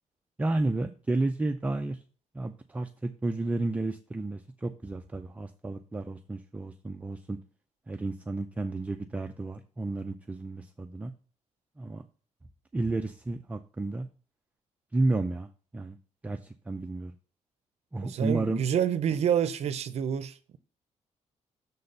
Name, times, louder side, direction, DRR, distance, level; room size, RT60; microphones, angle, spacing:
voice 1, 0.4-2.0 2.3-7.4 7.9-11.1 11.8-12.0 12.7-14.1 14.9-16.0 16.2-17.1 17.9-18.6, right 2 dB, 10° right, 0.4 m, -32 dB
voice 2, 18.0-20.6, right 9 dB, 60° right, 0.6 m, -28 dB
6.8 x 4.1 x 6.5 m
wide cardioid pair, 175°, 13 cm